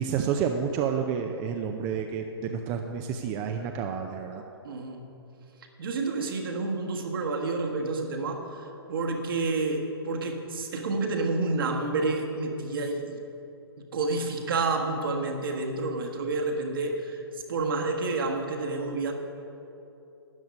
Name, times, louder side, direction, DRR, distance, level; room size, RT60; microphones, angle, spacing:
voice 1, 0.0-4.4, right 7 dB, 25° right, 4 dB, 0.5 m, -29 dB
voice 2, 4.6-5.1 5.8-13.2 13.8-19.1, right 3 dB, 60° right, 2 dB, 1.5 m, -29 dB
12.5 x 9.3 x 5.3 m, 2.9 s
figure-of-eight pair, 120°, 13 cm